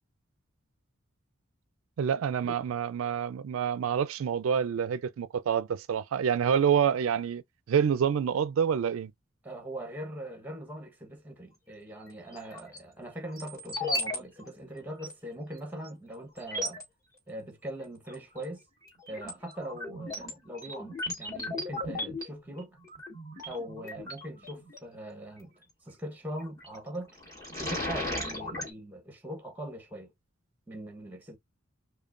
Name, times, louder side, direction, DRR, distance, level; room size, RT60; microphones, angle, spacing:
voice 1, 2.0-7.4 7.7-9.1, right 7 dB, 80° right, 0.3 m, -27 dB
voice 2, 9.4-16.8 17.3-18.6 19.1-22.8 23.4-25.5 25.8-27.1 27.6-30.1 30.7-31.4, right 1 dB, 10° right, 1.0 m, -41 dB
sound 1, 12.3-12.8 13.3-14.2 14.4-14.5 15.0-15.1 15.8-15.9 16.4-16.8 18.1-18.4 18.9-24.8 26.4-26.8 27.1-28.7, left 1 dB, 15° left, 2.2 m, -36 dB
5.1 x 2.2 x 2.4 m
head